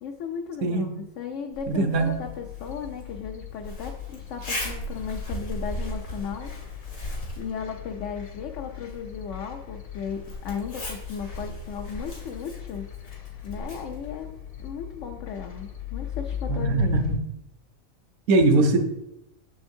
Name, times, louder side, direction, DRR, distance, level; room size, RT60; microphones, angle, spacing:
voice 1, 0.0-6.7 7.4-12.9 13.4-14.3 14.6-17.0, left 6 dB, 65° left, 3 dB, 0.9 m, -36 dB
Zipper (clothing), 1.5-15.1, left 1 dB, 85° left, 2.3 m, -39 dB
voice 2, 1.7-2.2 16.5-17.2 18.3-18.8, right 2 dB, 65° right, 5 dB, 1.1 m, -21 dB
sound 1, 1.9-17.2, left 10 dB, 50° left, 0.4 m, -39 dB
7.0 x 7.0 x 2.7 m, 0.85 s
omnidirectional pair, 1.5 m